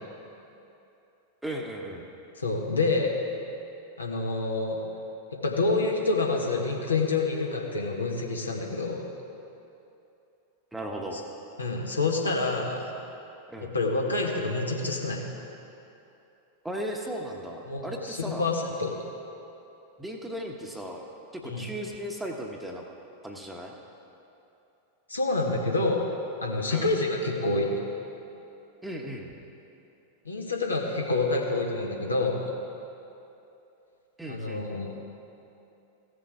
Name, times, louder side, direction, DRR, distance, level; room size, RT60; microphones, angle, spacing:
voice 1, 1.4-2.1 10.7-11.2 13.5-13.7 16.6-18.5 20.0-21.0 21.3-22.8 23.2-23.7 26.7-26.9 28.8-29.3 34.2-34.9, equal, 5° right, 1 dB, 1.1 m, -36 dB
voice 2, 2.4-3.2 4.0-4.8 5.4-9.1 11.1-11.2 11.6-12.9 13.6-15.2 17.7-18.9 21.4-21.7 25.1-26.1 26.4-27.8 30.2-32.5 34.3-34.9, left 3 dB, 80° left, -1 dB, 1.3 m, -27 dB
15.5 x 6.7 x 4.7 m, 2.8 s
figure-of-eight pair, 90°, 0 cm